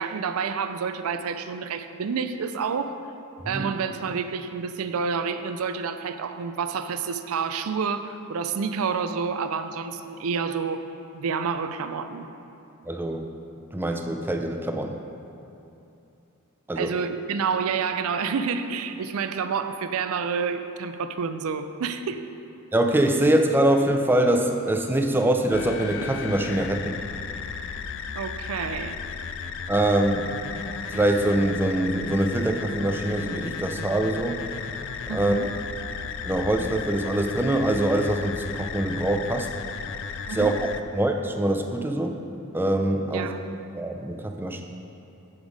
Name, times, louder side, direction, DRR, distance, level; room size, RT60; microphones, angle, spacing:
voice 1, 0.0-3.0 3.4-10.8 11.1-12.3 16.8-22.2 28.2-29.0 35.1-35.5 40.3-40.6 43.1-43.4, right 5 dB, 70° right, 10 dB, 0.4 m, -29 dB
voice 2, 12.9-13.2 13.7-15.0 16.7-16.9 22.7-27.0 29.7-30.3 30.8-34.4 35.1-35.5 36.2-39.5 40.3-40.5 40.9-42.2 42.5-43.3 43.7-44.6, right 1 dB, 10° right, 4 dB, 0.4 m, -24 dB
sound 1, 25.5-40.8, left 6 dB, 60° left, 0.3 m, -35 dB
8.0 x 5.3 x 5.0 m, 2.8 s
head